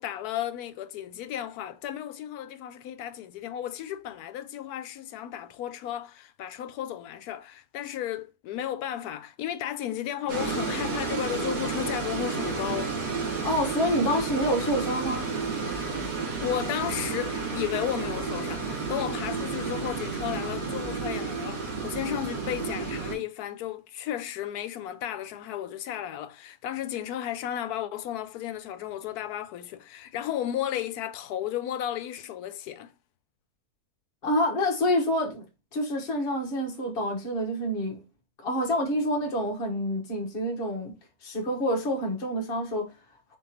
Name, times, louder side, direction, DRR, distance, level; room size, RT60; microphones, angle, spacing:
voice 1, 0.0-13.0 16.4-32.9, left 11 dB, 80° left, 1.1 m, -34 dB
sound 1, 10.3-23.1, right 4 dB, 80° right, 2.1 m, -31 dB
voice 2, 13.4-15.4 34.2-35.4 35.7-38.0 38.4-40.9 41.2-42.9, equal, 40° left, 1.3 m, -27 dB
4.9 x 3.5 x 2.9 m
omnidirectional pair, 1.6 m